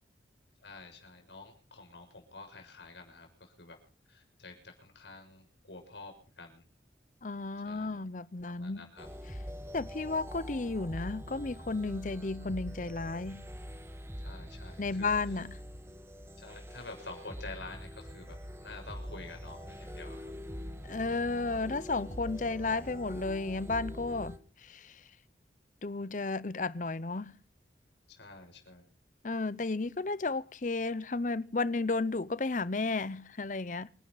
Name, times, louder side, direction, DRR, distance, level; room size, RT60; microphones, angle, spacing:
voice 1, 0.6-3.8 4.1-6.7 7.6-8.0 8.4-9.1 14.2-15.4 16.4-20.3 28.1-28.9, left 3 dB, 75° left, 6.5 m, -49 dB
voice 2, 7.2-8.9 9.7-13.4 14.8-15.5 20.9-25.0 25.8-27.3 29.2-33.9, left 3 dB, 45° left, 0.7 m, -33 dB
sound 1, 9.0-24.4, equal, 15° right, 1.5 m, -44 dB
27.0 x 11.5 x 4.0 m
head